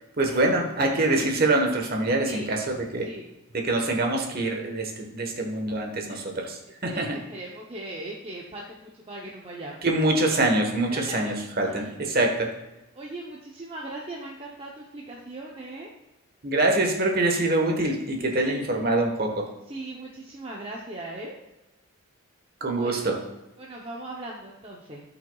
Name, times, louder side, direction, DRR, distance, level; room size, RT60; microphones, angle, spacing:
voice 1, 0.2-3.1 3.5-7.2 9.8-12.5 16.4-19.5 22.6-23.2, right 2 dB, 45° right, 2 dB, 1.3 m, -25 dB
voice 2, 6.8-9.8 10.1-10.3 10.9-11.3 11.7-11.9 12.9-15.9 18.4-18.7 19.7-21.4 22.7-23.0 23.6-25.0, right 2 dB, 25° right, -2 dB, 0.8 m, -39 dB
13.0 x 5.8 x 2.3 m, 1.0 s
head